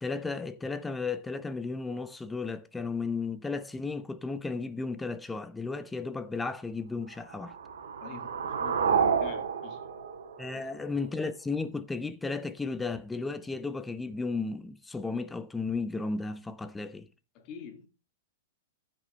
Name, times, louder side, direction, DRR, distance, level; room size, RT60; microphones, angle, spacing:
voice 1, 0.0-7.6 10.4-17.1, left 4 dB, 10° left, 0.9 m, -34 dB
sound 1, 7.2-11.2, right 6 dB, 80° right, 2.0 m, -30 dB
voice 2, 8.0-9.8 10.5-10.6 17.3-17.9, left 7 dB, 40° left, 2.4 m, -46 dB
14.5 x 6.3 x 3.3 m
hypercardioid pair, 120°, 0 cm